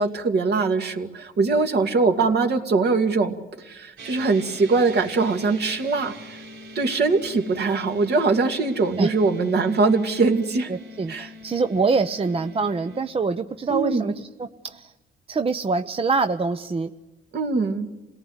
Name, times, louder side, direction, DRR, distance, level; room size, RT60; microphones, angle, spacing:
voice 1, 0.0-3.3 3.7-6.1 6.8-10.7 11.1-11.3 13.7-14.1 17.3-17.9, right 4 dB, 55° right, 4 dB, 2.5 m, -22 dB
sound 1, 4.0-13.0, equal, 75° right, 3.9 m, -43 dB
voice 2, 10.7-14.9 15.3-16.9, right 4 dB, 30° right, 8 dB, 0.8 m, -25 dB
27.5 x 18.0 x 8.0 m, 1.1 s
cardioid pair, 90°, 20 cm